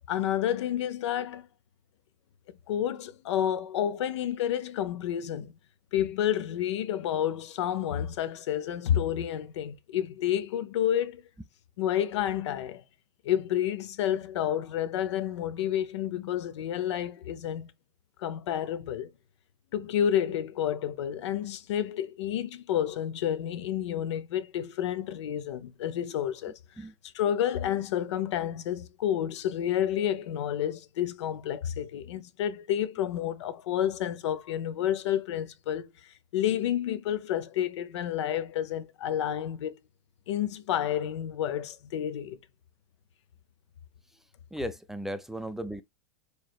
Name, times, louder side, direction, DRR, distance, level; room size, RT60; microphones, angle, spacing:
voice 1, 0.1-1.4 2.5-5.5 5.9-11.2 11.8-12.8 13.2-17.7 18.2-19.1 19.7-26.9 27.1-35.9 36.3-39.8 40.3-42.4, left 10 dB, 75° left, 0.7 m, -30 dB
voice 2, 44.5-45.8, equal, ahead, 0.5 m, -36 dB
4.8 x 3.1 x 2.3 m
hypercardioid pair, 120°, 15 cm